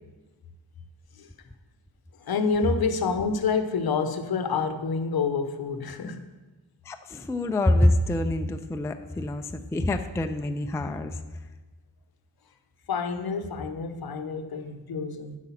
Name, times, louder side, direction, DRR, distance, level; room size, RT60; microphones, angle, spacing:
voice 1, 2.2-6.2 12.9-15.4, left 5 dB, 55° left, 8 dB, 0.8 m, -28 dB
voice 2, 6.9-11.2, left 1 dB, 5° left, 7 dB, 0.3 m, -26 dB
8.0 x 5.0 x 5.6 m, 1.2 s
cardioid pair, 80°, 43 cm